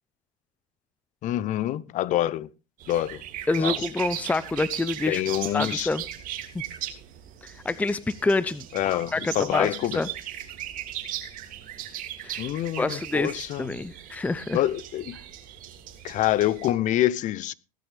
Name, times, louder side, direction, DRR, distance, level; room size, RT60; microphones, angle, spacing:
voice 1, 1.2-2.5 2.9-3.2 3.6-3.8 5.1-5.9 8.7-10.0 12.4-13.7 14.5-15.2 16.0-17.5, left 13 dB, 45° left, 0.8 m, -26 dB
sound 1, 2.8-16.7, right 11 dB, 50° right, 2.8 m, -37 dB
voice 2, 3.5-5.2 5.5-6.0 7.4-10.1 12.2-12.4 12.8-14.6, left 3 dB, 10° left, 0.7 m, -27 dB
17.0 x 12.5 x 3.5 m
supercardioid pair, 105°, 18 cm